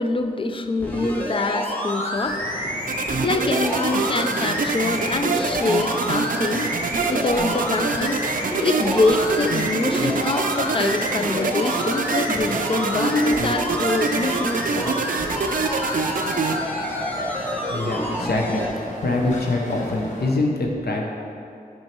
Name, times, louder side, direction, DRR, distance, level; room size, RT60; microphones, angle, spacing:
voice 1, 0.0-2.4 3.2-6.7 7.1-8.2 8.6-15.0, left 3 dB, 35° left, 7 dB, 0.4 m, -24 dB
sound 1, 0.8-18.7 19.3-19.4, equal, 10° left, 1.2 m, -28 dB
sound 2, 2.2-20.3, left 1 dB, 50° left, 1.2 m, -36 dB
sound 3, 2.9-16.6, right 5 dB, 60° right, 0.4 m, -26 dB
voice 2, 17.7-18.6 19.0-21.1, left 2 dB, 80° left, 0 dB, 0.7 m, -24 dB
5.9 x 4.5 x 4.4 m, 2.5 s
cardioid pair, 55°, 16 cm